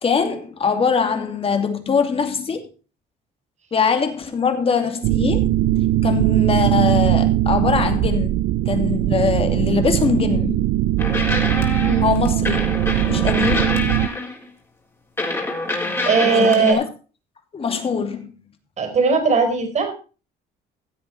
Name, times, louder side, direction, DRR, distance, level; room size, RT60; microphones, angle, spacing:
voice 1, 0.0-2.6 3.7-5.5 6.0-10.7 12.0-12.6 13.1-14.0 16.2-16.8 17.5-18.3, left 5 dB, 35° left, 2.7 m, -22 dB
sound 1, 5.0-14.1, right 14 dB, 75° right, 0.5 m, -20 dB
sound 2, 11.0-14.5 15.2-16.7, left 2 dB, 15° left, 3.9 m, -25 dB
voice 2, 16.1-16.8 18.8-19.9, right 5 dB, 45° right, 4.5 m, -18 dB
15.5 x 8.1 x 4.2 m
cardioid pair, 110°, 17 cm